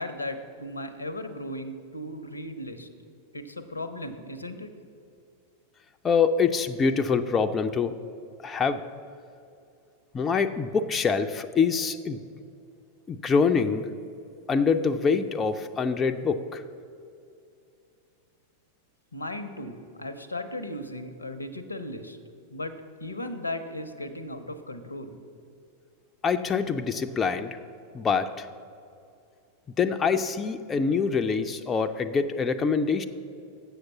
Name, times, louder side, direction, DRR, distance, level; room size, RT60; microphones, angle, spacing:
voice 1, 0.0-2.9 3.3-4.7 19.1-22.2 22.5-25.2, left 1 dB, 80° left, 10 dB, 0.6 m, -36 dB
voice 2, 6.0-8.0 8.4-8.8 10.1-12.2 13.1-13.9 14.5-16.6 26.2-27.6 27.9-28.5 29.8-33.1, left 5 dB, 20° left, 8 dB, 0.4 m, -25 dB
7.8 x 6.4 x 7.0 m, 2.5 s
figure-of-eight pair, 90°, 0 cm